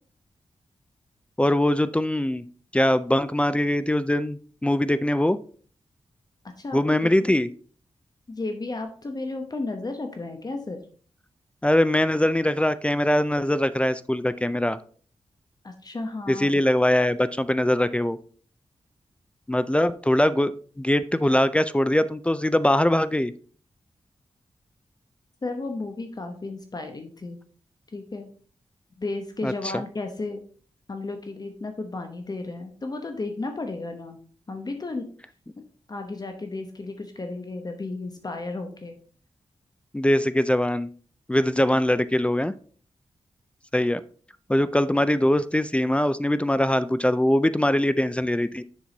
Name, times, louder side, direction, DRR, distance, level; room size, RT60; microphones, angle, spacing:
voice 1, 1.4-2.4 2.7-5.4 6.7-7.5 11.6-14.8 16.3-18.2 19.5-23.3 29.4-29.5 39.9-40.9 41.3-42.5 43.7-44.0 44.5-48.6, left 1 dB, 10° left, 14 dB, 0.4 m, -22 dB
voice 2, 6.6-7.4 8.3-10.8 15.6-16.5 25.4-27.4 27.9-28.3 29.0-30.4 30.9-34.2 34.5-35.1 35.9-39.0, left 3 dB, 35° left, 5 dB, 1.0 m, -33 dB
7.2 x 6.1 x 3.9 m, 0.44 s
wide cardioid pair, 100°, 11 cm